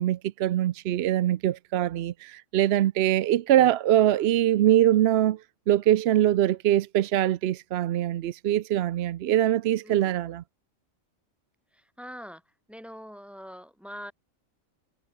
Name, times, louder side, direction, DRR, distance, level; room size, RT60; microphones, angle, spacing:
voice 1, 0.0-5.4 5.7-10.4, right 12 dB, 65° right, 0.7 m, -23 dB
voice 2, 9.8-10.1 11.7-12.4 12.7-14.1, equal, ahead, 3.1 m, -43 dB
omnidirectional pair, 1.4 m